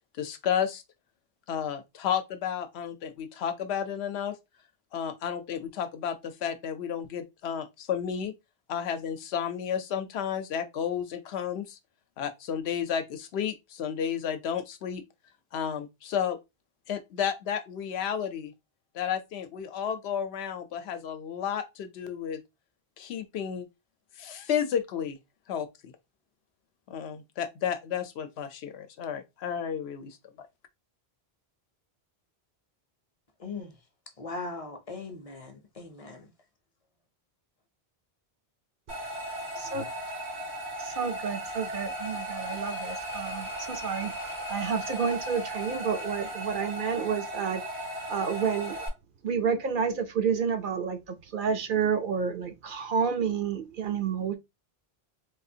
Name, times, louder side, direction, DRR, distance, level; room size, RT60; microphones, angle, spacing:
voice 1, 0.2-0.8 1.5-4.4 4.9-8.3 8.7-11.8 12.2-15.0 15.5-16.4 16.9-18.5 18.9-22.4 23.0-23.7 24.2-25.2 25.5-25.9 26.9-30.5, left 8 dB, 85° left, 0.8 m, -32 dB
voice 2, 33.4-33.8 34.2-36.3, left 3 dB, 40° left, 0.6 m, -39 dB
sound 1, 38.9-48.9, right 1 dB, 85° right, 1.6 m, -36 dB
voice 3, 39.6-39.9 40.8-44.1 44.5-47.6 48.1-48.8 49.2-54.3, right 6 dB, 60° right, 0.7 m, -30 dB
3.7 x 2.4 x 2.7 m
omnidirectional pair, 1.0 m